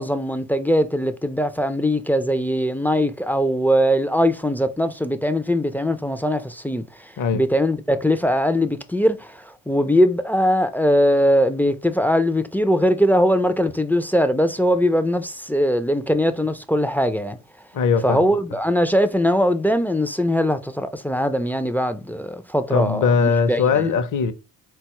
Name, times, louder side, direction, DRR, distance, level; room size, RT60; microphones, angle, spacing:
voice 1, 0.0-17.4 18.0-23.8, equal, 5° left, 0.3 m, -21 dB
voice 2, 17.7-18.2 22.7-24.3, left 5 dB, 45° left, 0.6 m, -20 dB
3.8 x 2.3 x 2.9 m
supercardioid pair, 50°, 44 cm